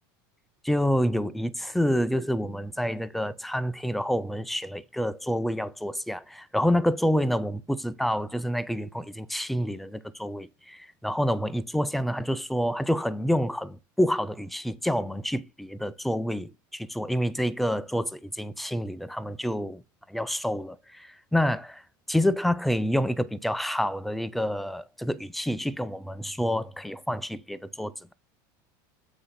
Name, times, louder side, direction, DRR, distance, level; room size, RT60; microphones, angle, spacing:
voice 1, 0.6-19.8 20.1-21.8 22.1-28.1, equal, ahead, 0.3 m, -28 dB
7.8 x 3.8 x 4.0 m
supercardioid pair, 150°, 11 cm